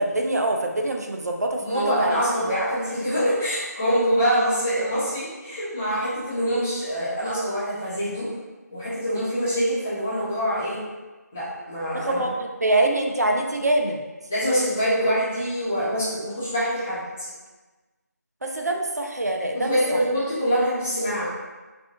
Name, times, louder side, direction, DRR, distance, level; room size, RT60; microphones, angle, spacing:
voice 1, 0.0-2.2 11.9-14.0 18.4-20.0, right 2 dB, 65° right, 2 dB, 0.6 m, -24 dB
voice 2, 1.6-8.3 8.7-10.8 11.3-12.2 14.3-17.3 19.5-21.3, equal, 5° left, -13 dB, 0.4 m, -25 dB
4.0 x 3.6 x 2.9 m, 1.2 s
figure-of-eight pair, 165°, 9 cm